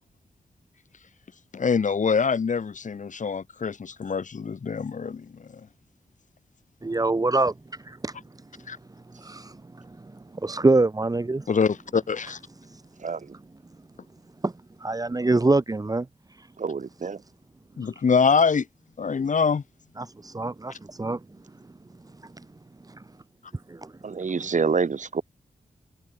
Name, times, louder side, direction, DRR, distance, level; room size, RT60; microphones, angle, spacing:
voice 1, 1.5-5.6 8.7-8.8 11.5-12.4 17.8-18.7 19.0-19.6, left 5 dB, 60° left, 2.9 m, -24 dB
voice 2, 6.8-8.2 8.5-8.6 9.1-11.5 12.6-12.8 14.4-14.5 14.8-16.5 17.8-18.0 20.0-21.2 22.2-22.5 22.9-23.0 23.7-23.9, right 2 dB, 25° right, 1.8 m, -26 dB
voice 3, 13.0-13.4 16.6-17.2 24.0-25.2, right 5 dB, 60° right, 7.3 m, -27 dB
wide cardioid pair, 95°, 15 cm